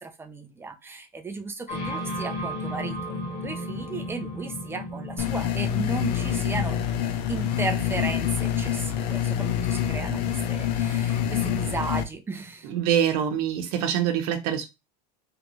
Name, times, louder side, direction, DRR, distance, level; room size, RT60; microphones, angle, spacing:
voice 1, 0.0-6.8 7.3-12.7, right 4 dB, 10° right, 7 dB, 0.5 m, -35 dB
sound 1, 1.7-11.3, left 1 dB, 45° left, 1.8 m, -36 dB
sound 2, 5.2-12.0, left 10 dB, 85° left, 0.6 m, -26 dB
voice 2, 12.6-14.7, right 9 dB, 65° right, 7 dB, 0.9 m, -25 dB
3.3 x 2.5 x 3.0 m, 0.23 s
supercardioid pair, 130°, 21 cm